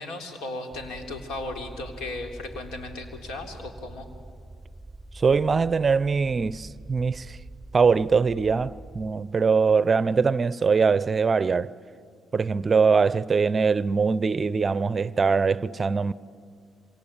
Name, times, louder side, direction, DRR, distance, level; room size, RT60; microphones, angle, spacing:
voice 1, 0.0-4.1, left 2 dB, 90° left, 3.5 m, -36 dB
sound 1, 0.7-9.1, right 2 dB, 5° right, 3.7 m, -45 dB
voice 2, 5.1-7.4 7.7-11.7 12.3-16.1, right 5 dB, 35° right, 0.6 m, -22 dB
26.5 x 25.5 x 8.8 m
cardioid pair, 90°, 0 cm